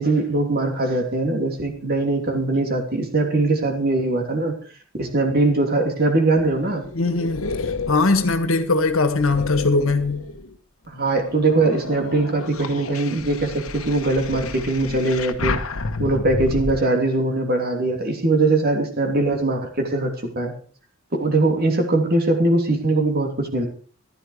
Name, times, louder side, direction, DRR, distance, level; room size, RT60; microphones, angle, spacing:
voice 1, 0.0-4.5 5.0-6.8 10.9-15.6 16.0-20.5 21.1-23.7, right 2 dB, 50° right, 3.1 m, -21 dB
sound 1, 6.3-10.6 11.1-16.7, left 3 dB, 90° left, 1.3 m, -31 dB
voice 2, 7.0-7.5 7.9-10.2, left 3 dB, 70° left, 1.7 m, -20 dB
14.5 x 12.0 x 4.9 m
head